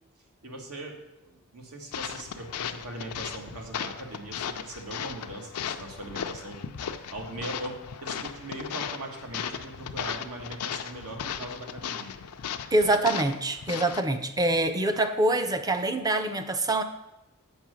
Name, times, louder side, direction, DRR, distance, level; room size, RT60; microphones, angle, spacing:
voice 1, 0.4-6.6 7.1-12.1, right 1 dB, 80° right, 1 dB, 1.5 m, -40 dB
sound 1, 1.9-14.1, left 8 dB, 90° left, 0.5 m, -36 dB
voice 2, 12.7-16.8, right 2 dB, 15° right, 8 dB, 0.5 m, -25 dB
7.3 x 5.4 x 6.2 m, 0.92 s
head